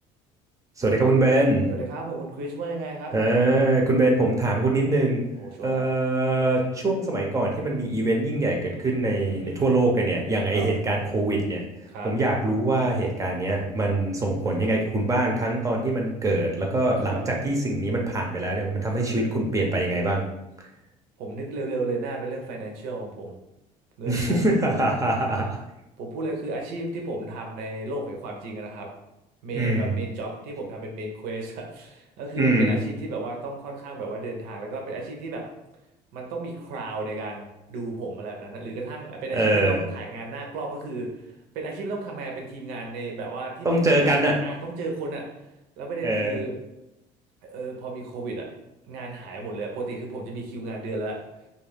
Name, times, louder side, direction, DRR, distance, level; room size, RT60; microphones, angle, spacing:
voice 1, 0.8-1.7 3.1-5.2 5.6-11.6 12.0-20.3 24.1-25.6 29.5-30.0 32.4-32.8 39.3-39.8 43.6-44.4 46.0-46.4, right 2 dB, 20° right, 0 dB, 0.6 m, -23 dB
voice 2, 1.7-3.1 5.4-5.8 9.4-9.5 10.5-10.7 11.9-12.1 17.0-17.2 18.9-19.7 21.2-23.4 24.0-24.5 26.0-28.9 29.4-35.4 36.1-44.2 44.4-45.2 45.8-46.5 47.4-48.5 48.9-51.2, right 2 dB, 75° right, 1 dB, 0.7 m, -34 dB
2.4 x 2.3 x 3.3 m, 0.91 s
cardioid pair, 115°, 15 cm